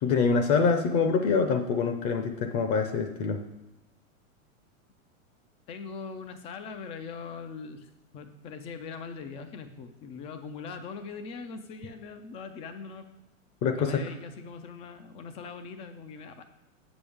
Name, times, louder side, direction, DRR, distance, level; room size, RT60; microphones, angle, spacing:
voice 1, 0.0-3.4 13.6-14.1, left 5 dB, 35° left, 6 dB, 0.8 m, -25 dB
voice 2, 5.7-7.9 8.1-13.1 13.6-16.4, left 5 dB, 15° left, 9 dB, 0.3 m, -41 dB
8.5 x 7.0 x 3.5 m, 1.0 s
hypercardioid pair, 120°, 41 cm